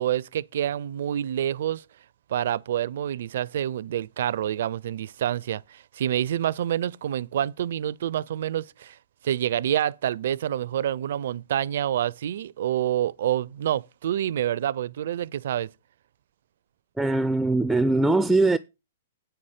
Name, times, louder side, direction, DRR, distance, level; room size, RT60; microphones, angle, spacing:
voice 1, 0.0-1.8 2.3-9.0 9.2-15.7, right 11 dB, 65° right, 0.4 m, -27 dB
voice 2, 17.0-18.6, right 2 dB, 5° right, 0.4 m, -21 dB
8.5 x 5.6 x 6.4 m
hypercardioid pair, 125°, 0 cm